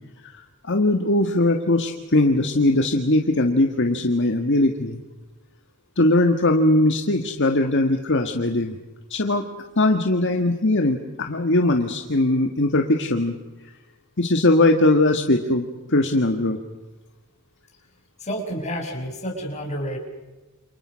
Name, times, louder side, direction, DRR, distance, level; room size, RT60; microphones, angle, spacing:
voice 1, 0.2-5.0 6.0-8.8 9.1-9.4 9.8-13.4 14.2-16.6, left 2 dB, 55° left, 5 dB, 1.8 m, -20 dB
voice 2, 18.2-20.0, equal, 30° left, 2 dB, 6.7 m, -29 dB
29.0 x 28.5 x 6.4 m, 1.1 s
head